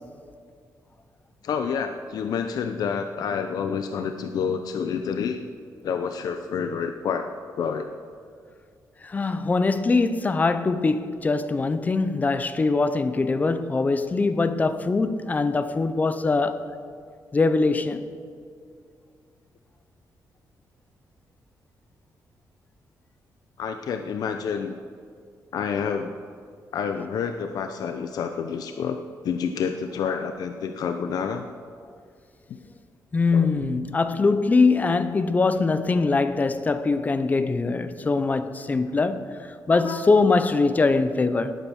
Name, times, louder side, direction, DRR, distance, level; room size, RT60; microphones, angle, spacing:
voice 1, 1.4-5.4 5.8-7.3 7.6-7.9 23.6-24.7 25.5-26.1 26.7-29.0 29.2-31.4 33.3-33.5 39.7-40.0, left 6 dB, 65° left, 0.7 m, -28 dB
voice 2, 9.0-16.6 17.3-18.0 33.1-39.3 39.7-41.6, left 3 dB, 25° left, 0.6 m, -22 dB
18.5 x 9.0 x 6.3 m
wide cardioid pair, 165°, 7 cm